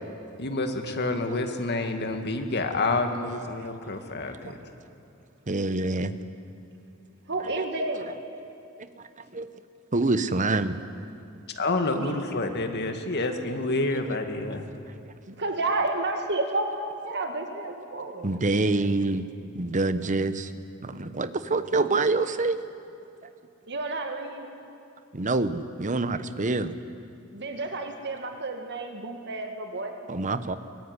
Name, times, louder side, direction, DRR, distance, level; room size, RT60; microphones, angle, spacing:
voice 1, 0.4-4.6 11.6-14.6, left 2 dB, 50° left, 5 dB, 2.1 m, -28 dB
voice 2, 5.5-6.1 7.4-7.6 9.3-9.5 9.9-10.8 14.1-14.2 18.2-19.2 19.5-20.5 20.8-22.6 25.1-26.7 30.1-30.5, right 3 dB, 35° right, 11 dB, 1.0 m, -26 dB
voice 3, 7.3-8.1 11.9-12.2 15.4-18.3 23.7-24.5 27.3-29.9, right 2 dB, 55° right, 4 dB, 2.0 m, -31 dB
22.5 x 19.0 x 9.8 m, 2.7 s
head